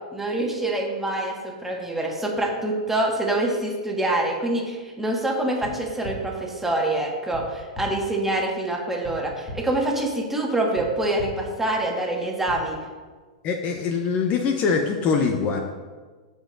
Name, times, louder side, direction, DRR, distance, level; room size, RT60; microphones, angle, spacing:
voice 1, 0.1-12.8, right 1 dB, 5° right, -1 dB, 1.6 m, -25 dB
sound 1, 5.6-5.7 6.0-6.1 7.3-7.4 7.7-7.8 9.0-9.1 9.5-9.6 10.7-10.8 11.2-11.3 12.5-12.6, left 1 dB, 20° left, 2.6 m, -36 dB
voice 2, 13.4-15.6, left 5 dB, 35° left, 4 dB, 0.8 m, -23 dB
14.5 x 5.2 x 2.6 m, 1.4 s
hypercardioid pair, 120°, 4 cm